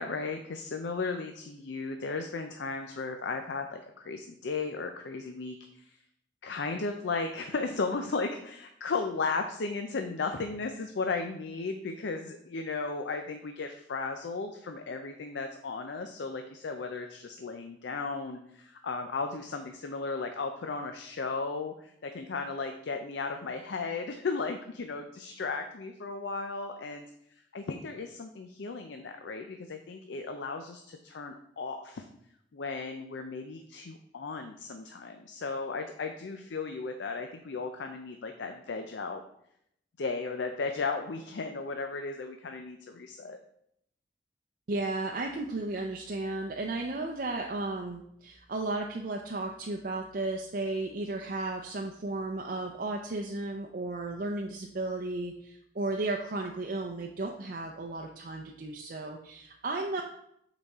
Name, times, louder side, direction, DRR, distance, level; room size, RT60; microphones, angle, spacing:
voice 1, 0.0-6.0 6.4-27.1 27.5-32.1 32.5-39.2 40.0-43.4, left 4 dB, 75° left, 5 dB, 0.5 m, -35 dB
voice 2, 44.7-60.0, right 2 dB, 50° right, 1 dB, 0.5 m, -34 dB
8.4 x 4.1 x 3.6 m, 0.74 s
head